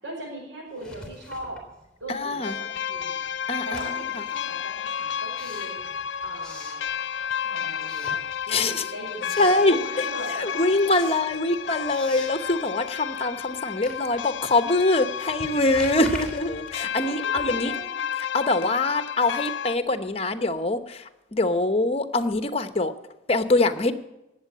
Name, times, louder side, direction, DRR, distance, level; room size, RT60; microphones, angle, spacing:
voice 1, 0.0-1.7 2.0-3.2 3.6-5.8 6.2-6.9 7.4-11.0 17.0-18.0, right 1 dB, 85° right, -3 dB, 5.4 m, -39 dB
Writing, 0.7-2.3 2.6-7.4 7.8-8.8 9.0-9.7 10.1-17.8, left 2 dB, 5° left, 3.2 m, -44 dB
voice 2, 2.1-2.6 3.5-4.2 8.5-8.8 9.4-9.8 10.4-17.7 18.3-22.9 23.3-23.9, left 2 dB, 30° left, 10 dB, 1.0 m, -24 dB
sound 1, 2.4-19.8, left 8 dB, 80° left, 0.5 m, -32 dB
18.5 x 7.6 x 8.6 m, 0.94 s
head